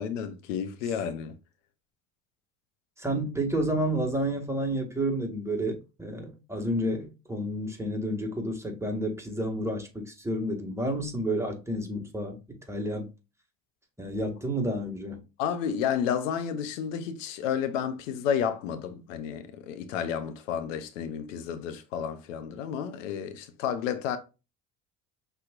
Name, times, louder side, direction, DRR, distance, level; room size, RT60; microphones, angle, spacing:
voice 1, 0.0-1.3 15.4-24.2, left 8 dB, 85° left, 0.7 m, -31 dB
voice 2, 3.0-12.4 12.7-13.1 14.0-15.2, right 1 dB, 5° right, 1.8 m, -30 dB
5.7 x 3.5 x 2.4 m
hypercardioid pair, 60°, 37 cm